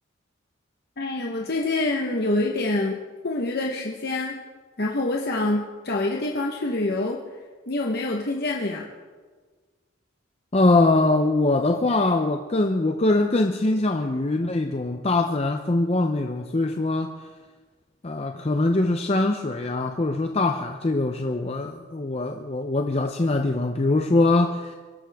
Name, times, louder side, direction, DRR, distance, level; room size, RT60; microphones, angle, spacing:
voice 1, 1.0-3.0 3.2-4.4 4.8-7.2 7.7-8.9, left 2 dB, 50° left, -1 dB, 1.0 m, -26 dB
voice 2, 10.5-17.1 18.0-24.7, left 2 dB, 30° left, 5 dB, 0.6 m, -22 dB
23.0 x 12.5 x 3.5 m, 1.4 s
head